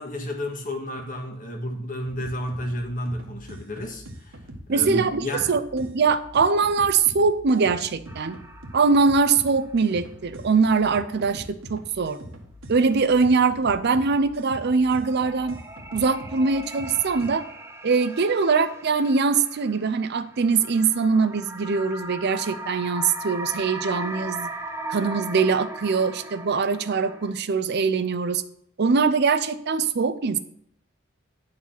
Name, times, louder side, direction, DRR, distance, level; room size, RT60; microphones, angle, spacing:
voice 1, 0.0-4.4 4.7-5.5, left 1 dB, 40° left, 2 dB, 1.6 m, -31 dB
sound 1, 2.1-17.3, equal, 70° right, 1.5 m, -43 dB
voice 2, 4.7-8.4 8.7-12.2 12.7-15.6 15.9-17.4 17.8-24.5 24.9-28.4 28.8-30.4, right 4 dB, 55° right, 11 dB, 0.5 m, -22 dB
sound 2, 8.1-9.6 10.0-10.1 14.4-27.3, right 2 dB, 15° right, 0.7 m, -38 dB
10.0 x 4.8 x 5.7 m, 0.69 s
head